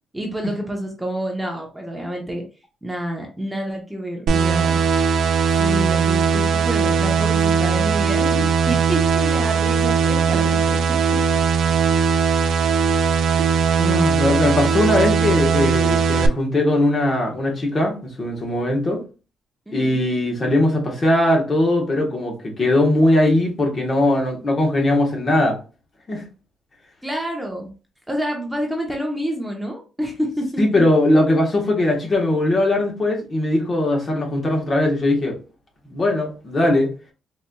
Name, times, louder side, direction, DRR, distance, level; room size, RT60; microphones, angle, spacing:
voice 1, 0.1-2.4 2.8-4.8 5.6-11.4 19.7-20.0 27.0-27.7 28.1-30.6, equal, 5° right, 1 dB, 0.8 m, -28 dB
sound 1, 4.3-16.3, right 6 dB, 70° right, 0.3 m, -19 dB
voice 2, 13.8-19.0 19.7-25.6 26.1-26.2 30.6-35.4 35.8-36.9, left 1 dB, 35° left, 1 dB, 1.2 m, -20 dB
4.1 x 2.5 x 2.2 m, 0.34 s
cardioid pair, 90°, 0 cm